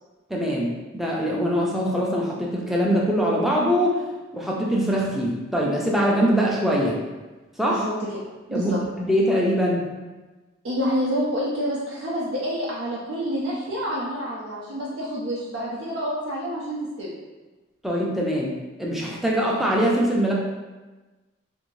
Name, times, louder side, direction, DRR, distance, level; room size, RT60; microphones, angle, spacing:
voice 1, 0.3-4.0 4.3-7.0 7.6-7.8 8.5-9.8 17.8-18.5 18.8-20.3, equal, ahead, -4 dB, 0.4 m, -23 dB
voice 2, 7.7-8.1 8.5-8.8 10.6-17.1, equal, 80° right, -6 dB, 0.5 m, -28 dB
2.6 x 2.5 x 3.1 m, 1.2 s
head